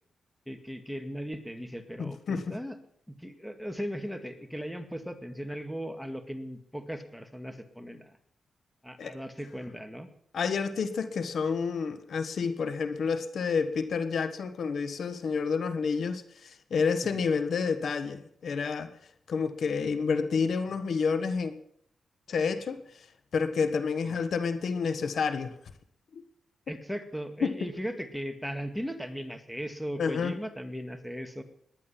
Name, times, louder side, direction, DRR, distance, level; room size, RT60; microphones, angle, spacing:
voice 1, 0.5-2.8 3.1-8.2 8.8-10.1 17.0-17.2 24.0-24.2 26.7-31.4, equal, ahead, 7 dB, 2.1 m, -38 dB
voice 2, 2.0-2.6 9.0-9.1 10.3-18.9 19.3-21.5 22.3-22.8 23.3-25.5 26.1-26.2 27.4-27.5 30.0-30.4, left 5 dB, 70° left, 9 dB, 1.3 m, -29 dB
18.5 x 11.0 x 5.9 m, 0.70 s
cardioid pair, 65°, 0 cm